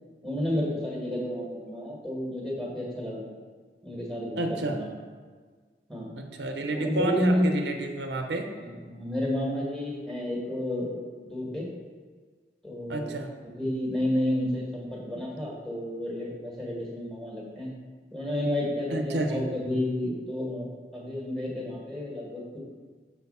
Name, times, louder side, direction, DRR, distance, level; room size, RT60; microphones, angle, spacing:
voice 1, 0.2-3.2 3.8-4.9 5.9-6.1 6.6-7.5 8.6-11.7 12.6-13.1 13.4-17.7 18.1-22.6, left 1 dB, ahead, -4 dB, 1.6 m, -31 dB
voice 2, 4.4-4.8 6.2-8.5 12.9-13.3 18.9-19.4, right 2 dB, 80° right, 4 dB, 0.7 m, -30 dB
7.3 x 4.2 x 5.5 m, 1.5 s
head